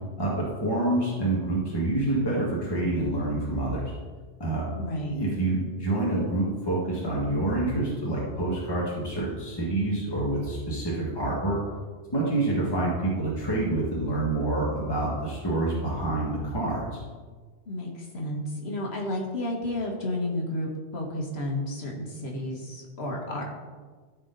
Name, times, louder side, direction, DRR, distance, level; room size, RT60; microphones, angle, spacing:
voice 1, 0.2-3.9 4.4-4.6 4.9-11.6 12.1-17.0, right 2 dB, 20° left, -5 dB, 1.7 m, -27 dB
voice 2, 4.7-5.2 17.7-23.6, left 1 dB, 65° left, -1 dB, 1.8 m, -32 dB
13.5 x 4.6 x 4.0 m, 1.4 s
omnidirectional pair, 1.2 m